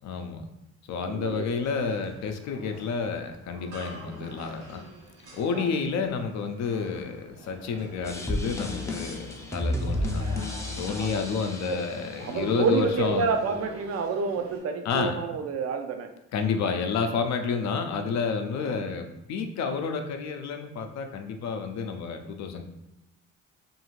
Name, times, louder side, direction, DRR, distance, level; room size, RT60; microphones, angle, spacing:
voice 1, 0.0-0.4 0.9-4.8 5.3-10.3 10.7-13.3 14.8-15.1 16.3-22.6, left 5 dB, 65° left, 6 dB, 0.5 m, -30 dB
voice 2, 1.0-1.6 5.5-5.6 11.0-11.1 11.7-11.8 12.2-16.1 18.6-18.8, right 5 dB, 55° right, 6 dB, 0.4 m, -29 dB
sound 1, 1.3-14.6, right 1 dB, 85° right, 1.0 m, -47 dB
sound 2, 8.0-13.0, left 1 dB, 10° left, 0.4 m, -32 dB
2.6 x 2.4 x 3.0 m, 0.89 s
cardioid pair, 90°, 30 cm